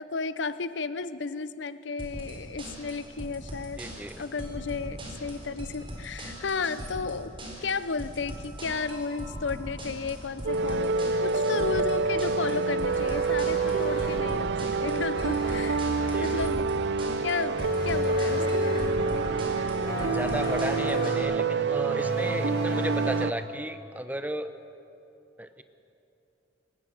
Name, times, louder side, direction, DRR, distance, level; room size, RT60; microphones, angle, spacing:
voice 1, 0.0-3.8 4.2-7.3 7.6-15.9 16.2-16.6 17.2-19.3, left 4 dB, 70° left, 14 dB, 0.6 m, -33 dB
sound 1, 2.0-21.2, equal, 30° right, 4.4 m, -39 dB
voice 2, 3.8-4.2 16.0-16.6 19.9-24.5 25.4-25.6, right 1 dB, 10° right, 10 dB, 0.7 m, -34 dB
sound 2, 10.5-23.3, right 4 dB, 60° right, 0.4 m, -27 dB
sound 3, 12.9-14.4 15.1-16.7 17.6-19.0 19.9-21.3 22.0-23.4, left 2 dB, 55° left, 2.0 m, -35 dB
21.5 x 19.0 x 6.6 m, 2.9 s
head